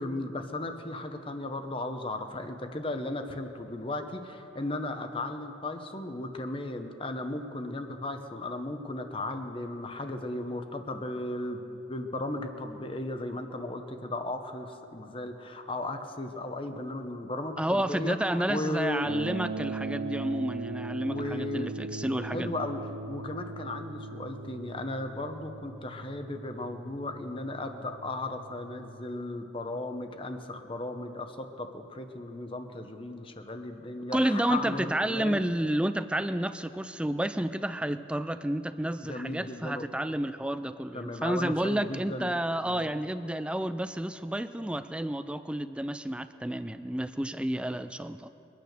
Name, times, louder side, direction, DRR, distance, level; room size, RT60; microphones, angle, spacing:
voice 1, 0.0-19.1 21.1-21.7 22.3-22.8 23.1-35.4 39.0-39.8 40.9-42.3 42.6-42.9, left 2 dB, 25° left, 6 dB, 0.9 m, -36 dB
voice 2, 17.6-22.5 34.1-48.3, right 1 dB, 5° right, 12 dB, 0.3 m, -30 dB
sound 1, 19.0-29.1, right 3 dB, 75° right, 0.5 m, -40 dB
23.5 x 9.3 x 6.6 m, 3.0 s
head